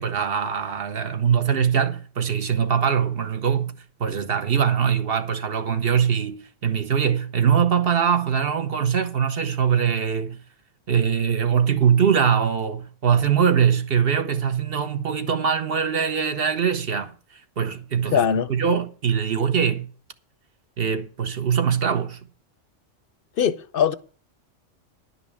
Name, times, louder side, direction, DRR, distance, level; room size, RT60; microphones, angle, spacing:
voice 1, 0.0-3.7 4.0-10.4 10.9-19.9 20.8-22.2, right 7 dB, 55° right, 1.0 m, -22 dB
voice 2, 18.1-18.5 23.4-23.9, left 8 dB, 55° left, 0.7 m, -21 dB
11.0 x 5.7 x 8.3 m
omnidirectional pair, 1.3 m